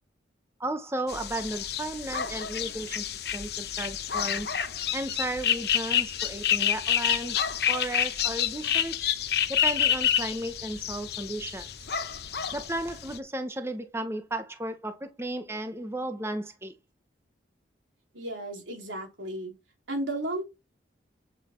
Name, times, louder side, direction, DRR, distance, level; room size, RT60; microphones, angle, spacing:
voice 1, 0.6-4.5 4.9-9.1 9.5-11.7 12.5-16.7, right 1 dB, 15° right, 0.8 m, -34 dB
sound 1, 1.1-13.2, left 9 dB, 55° left, 0.9 m, -29 dB
voice 2, 18.1-19.5 19.9-20.4, right 1 dB, 90° right, 3.7 m, -33 dB
8.9 x 6.2 x 4.5 m
head